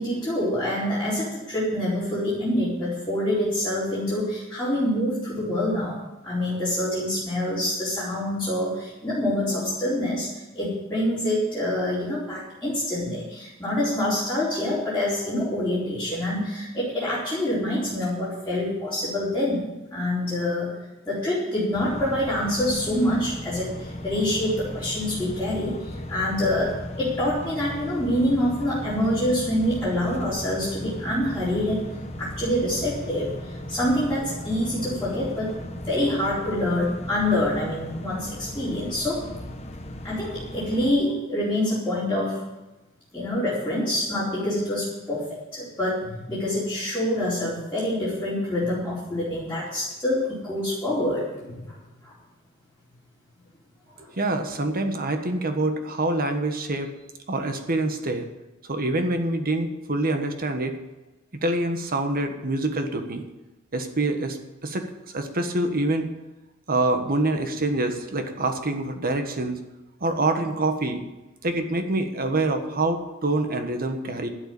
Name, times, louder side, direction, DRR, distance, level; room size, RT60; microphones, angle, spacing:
voice 1, 0.0-6.0 6.2-20.7 21.1-31.8 32.2-39.2 40.0-42.4 43.1-51.8 52.0-52.1 54.0-54.1, left 1 dB, 10° left, -10 dB, 4.4 m, -26 dB
sound 1, 21.7-40.9, left 1 dB, 30° left, 1.2 m, -37 dB
voice 2, 54.2-56.9 57.3-58.3 58.6-60.7 61.4-63.2 63.7-66.1 66.7-69.6 70.0-71.0 71.4-74.3, right 2 dB, 45° right, 6 dB, 1.4 m, -26 dB
12.0 x 8.0 x 8.7 m, 1.0 s
head